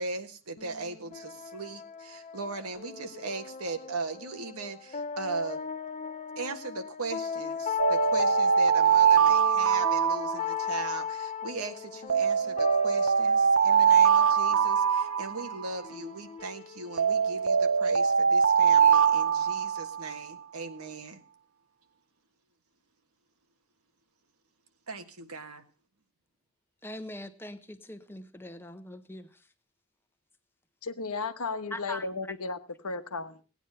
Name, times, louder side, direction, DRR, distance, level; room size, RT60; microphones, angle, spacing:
voice 1, 0.0-5.6 6.4-21.2 24.9-25.6, right 3 dB, 85° right, 1.6 m, -38 dB
sound 1, 0.6-18.0, left 7 dB, 30° left, 0.6 m, -38 dB
sound 2, 7.8-11.0 12.1-15.9 17.0-20.2, right 6 dB, 65° right, 0.8 m, -23 dB
voice 2, 26.8-29.3 31.7-32.1, left 1 dB, 10° left, 1.0 m, -41 dB
voice 3, 30.8-32.6 32.8-33.4, left 4 dB, 90° left, 1.2 m, -34 dB
18.0 x 9.2 x 5.5 m
head